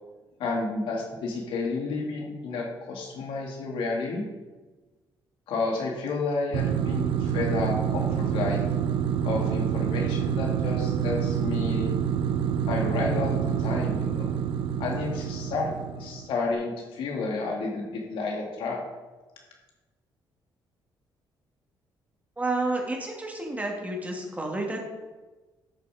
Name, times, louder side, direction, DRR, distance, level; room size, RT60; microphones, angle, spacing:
voice 1, 0.4-4.2 5.5-8.6 9.2-11.9 12.7-14.3 14.8-18.8, left 3 dB, 80° left, -1 dB, 2.6 m, -31 dB
sound 1, 6.5-16.3, right 8 dB, 80° right, 0.8 m, -27 dB
voice 2, 22.4-24.8, right 2 dB, 15° right, 0 dB, 2.4 m, -30 dB
12.0 x 5.6 x 5.1 m, 1.2 s
cardioid pair, 95°, 9 cm